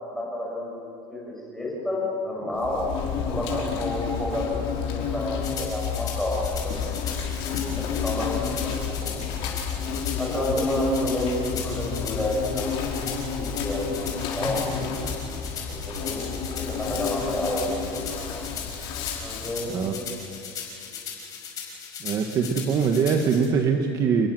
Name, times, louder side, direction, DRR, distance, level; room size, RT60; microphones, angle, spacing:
voice 1, 0.1-2.8 3.2-7.0 7.8-8.3 8.6-9.1 9.4-9.5 10.2-12.8 13.4-13.8 14.3-15.0 15.7-16.2 16.6-18.1 19.2-20.0 20.9-21.0, left 1 dB, 5° left, -4 dB, 6.9 m, -30 dB
Insect, 2.6-19.6, left 6 dB, 55° left, 5.2 m, -30 dB
sound 1, 5.4-23.5, left 7 dB, 35° left, 5.8 m, -38 dB
voice 2, 22.0-24.3, right 6 dB, 30° right, 4 dB, 1.4 m, -23 dB
29.5 x 21.5 x 7.7 m, 2.6 s
cardioid pair, 180°, 11 cm